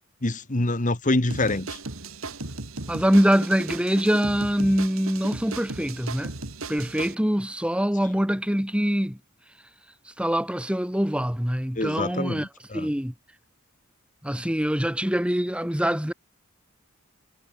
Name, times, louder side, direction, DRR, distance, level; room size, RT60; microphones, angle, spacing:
voice 1, 0.2-1.8 11.8-12.4 12.7-12.9, left 2 dB, 40° left, 1.5 m, -25 dB
sound 1, 1.3-7.1, right 3 dB, 80° right, 2.7 m, -36 dB
voice 2, 2.9-6.3 6.7-9.2 10.2-12.5 12.7-13.1 14.2-16.1, equal, 5° right, 1.5 m, -24 dB
head